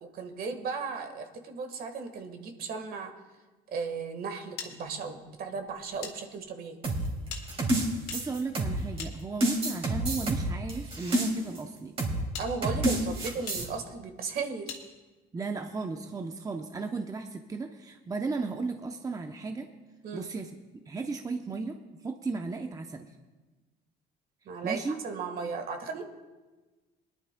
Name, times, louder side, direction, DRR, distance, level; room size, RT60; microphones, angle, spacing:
voice 1, 0.0-3.1 3.7-6.8 12.4-14.8 20.0-20.3 24.4-26.0, right 5 dB, 60° right, 6 dB, 1.5 m, -36 dB
sound 1, 4.6-6.2 6.4-6.5 7.2-9.7 10.5-11.3 11.8-11.9 12.3-12.5 13.5-13.6 14.7-14.8, left 6 dB, 85° left, 1.8 m, -43 dB
sound 2, 6.8-9.0 9.4-11.6 12.0-12.2 12.6-13.7, right 1 dB, 35° right, 2.7 m, -28 dB
voice 2, 8.1-11.9 15.3-19.7 20.1-21.7 22.0-23.1 24.6-24.9, right 4 dB, 20° right, 5 dB, 0.7 m, -35 dB
22.0 x 11.0 x 2.2 m, 1.2 s
cardioid pair, 110°, 17 cm